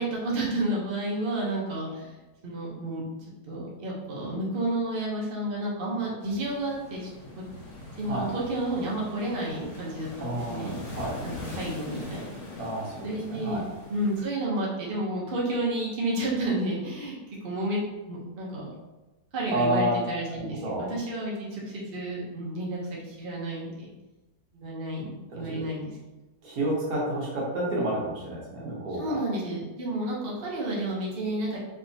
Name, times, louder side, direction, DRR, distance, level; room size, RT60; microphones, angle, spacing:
voice 1, 0.0-2.1 2.4-3.0 3.5-7.1 8.0-10.7 11.2-12.3 13.0-13.6 13.9-17.2 17.4-18.7 19.3-23.9 24.5-25.9 29.0-31.6, right 1 dB, 45° right, -5 dB, 0.8 m, -31 dB
sound 1, 6.2-14.3, left 2 dB, 70° left, 1.4 m, -42 dB
voice 2, 8.1-8.4 10.2-11.2 12.6-13.6 19.5-20.0 20.3-20.9 25.3-25.6 26.4-29.2, right 1 dB, 65° right, -5 dB, 1.4 m, -30 dB
3.3 x 2.9 x 2.7 m, 1.1 s
omnidirectional pair, 1.7 m